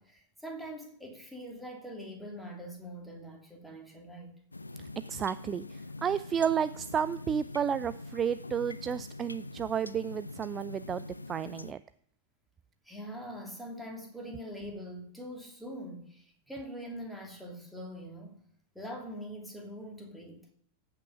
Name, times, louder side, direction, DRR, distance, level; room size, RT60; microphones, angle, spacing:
voice 1, 0.0-4.4 12.8-18.4 18.7-20.5, equal, ahead, 0 dB, 2.6 m, -43 dB
sound 1, 4.5-11.7, left 2 dB, 80° left, 0.4 m, -44 dB
voice 2, 5.1-11.8, right 8 dB, 25° right, 14 dB, 0.4 m, -32 dB
14.5 x 5.9 x 5.8 m, 0.65 s
figure-of-eight pair, 90°, 0 cm